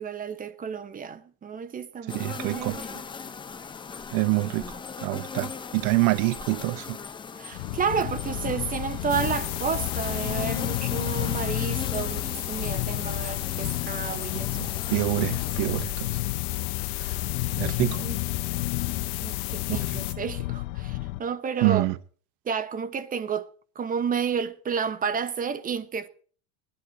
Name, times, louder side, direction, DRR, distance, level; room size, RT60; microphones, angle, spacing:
voice 1, 0.0-3.0 7.4-14.6 16.9-17.3 17.7-18.2 19.2-21.9 22.4-23.5 23.7-26.1, right 6 dB, 20° right, 1.1 m, -31 dB
sound 1, 2.1-15.8, left 5 dB, 10° left, 0.6 m, -39 dB
voice 2, 2.1-2.8 4.1-7.0 14.3-16.1 17.6-18.1 19.7-20.0 21.6-22.0, right 20 dB, 55° right, 1.1 m, -26 dB
sound 2, 7.5-21.2, left 18 dB, 65° left, 1.2 m, -32 dB
sound 3, 9.1-20.1, left 19 dB, 80° left, 0.9 m, -34 dB
19.0 x 12.0 x 4.1 m
supercardioid pair, 145°, 45 cm